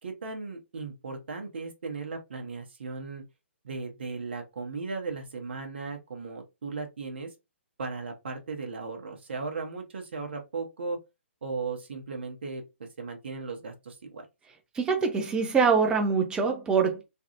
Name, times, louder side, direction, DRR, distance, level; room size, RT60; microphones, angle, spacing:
voice 1, 0.0-3.2 3.6-7.3 7.8-11.0 11.4-14.3, right 4 dB, 55° right, 0.8 m, -36 dB
voice 2, 14.7-17.0, right 5 dB, 10° right, 0.6 m, -24 dB
3.3 x 2.3 x 2.9 m
figure-of-eight pair, 125°, 7 cm